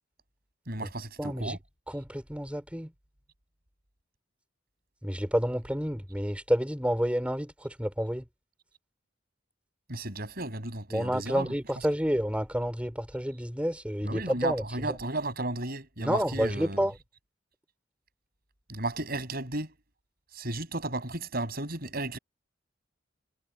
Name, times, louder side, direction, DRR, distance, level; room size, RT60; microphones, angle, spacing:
voice 1, 0.7-1.6 9.9-11.5 14.0-16.8 18.7-19.7 20.3-22.2, right 2 dB, 50° right, 7.3 m, -34 dB
voice 2, 1.2-1.6 1.9-2.9 5.0-8.2 10.9-14.6 16.0-16.9, equal, 5° right, 5.0 m, -29 dB
head